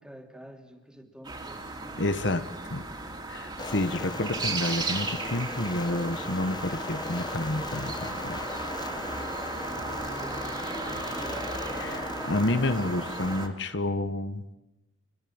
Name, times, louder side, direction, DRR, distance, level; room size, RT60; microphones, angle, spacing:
voice 1, 0.0-2.1 10.0-12.6, equal, 5° right, 4 dB, 3.0 m, -47 dB
sound 1, 1.2-13.5, right 3 dB, 25° right, 3.5 m, -36 dB
voice 2, 2.0-2.8 3.3-8.4 11.8-12.0 12.3-14.5, left 1 dB, 65° left, 10 dB, 1.3 m, -29 dB
sound 2, 3.6-13.5, left 2 dB, 20° left, 1.3 m, -38 dB
25.5 x 22.0 x 8.8 m, 0.90 s
head